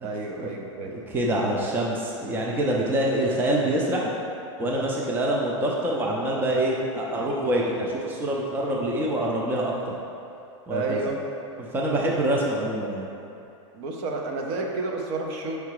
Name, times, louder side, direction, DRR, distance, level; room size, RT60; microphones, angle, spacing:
voice 1, 0.0-1.0 10.7-11.2 13.7-15.6, right 3 dB, 50° right, 1 dB, 0.8 m, -30 dB
voice 2, 0.8-4.1 4.6-9.7 10.7-11.0 11.6-13.1, right 1 dB, 10° right, -2 dB, 0.5 m, -25 dB
4.8 x 4.6 x 4.7 m, 2.8 s
hypercardioid pair, 130°, 16 cm